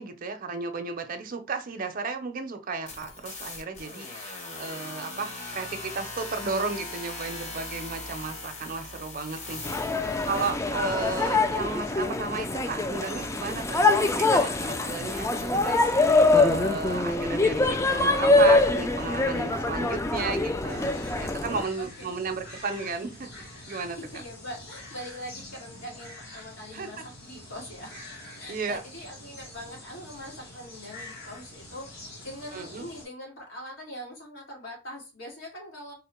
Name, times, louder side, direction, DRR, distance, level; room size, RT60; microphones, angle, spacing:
voice 1, 0.0-9.6 10.0-15.9 16.3-23.3 23.7-24.0 26.7-27.0 28.5-28.8 32.5-32.8, right 4 dB, 45° right, 7 dB, 0.6 m, -34 dB
sound 1, 2.9-10.6, left 2 dB, 35° left, 0.9 m, -39 dB
sound 2, 9.6-21.6, left 2 dB, 15° left, 0.3 m, -24 dB
sound 3, 20.7-33.0, left 1 dB, 55° left, 1.8 m, -46 dB
voice 2, 21.8-22.1 23.7-28.0 28.4-35.9, equal, 80° left, -1 dB, 1.7 m, -42 dB
3.7 x 2.1 x 4.3 m, 0.30 s
head